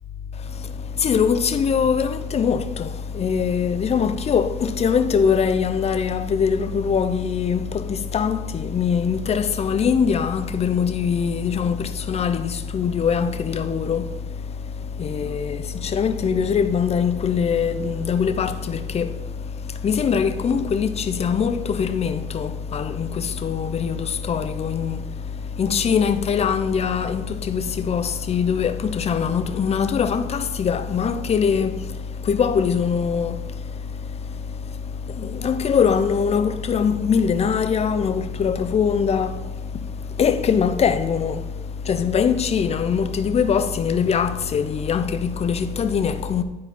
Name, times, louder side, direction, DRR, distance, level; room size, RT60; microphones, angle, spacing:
voice 1, 0.4-46.4, left 6 dB, 40° left, 0.8 m, -23 dB
11.0 x 4.8 x 5.8 m
cardioid pair, 110°, 17 cm